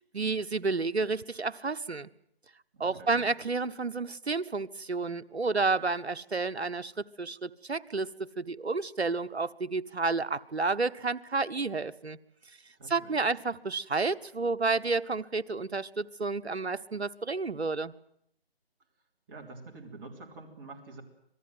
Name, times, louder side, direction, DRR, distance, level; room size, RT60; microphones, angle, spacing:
voice 1, 0.0-2.1 2.8-12.2 12.9-17.9, right 3 dB, 90° right, 12 dB, 1.0 m, -31 dB
voice 2, 2.7-3.2 12.8-13.3 19.3-21.0, right 3 dB, 20° right, 0 dB, 3.4 m, -47 dB
26.5 x 19.0 x 7.8 m, 0.74 s
figure-of-eight pair, 155°, 31 cm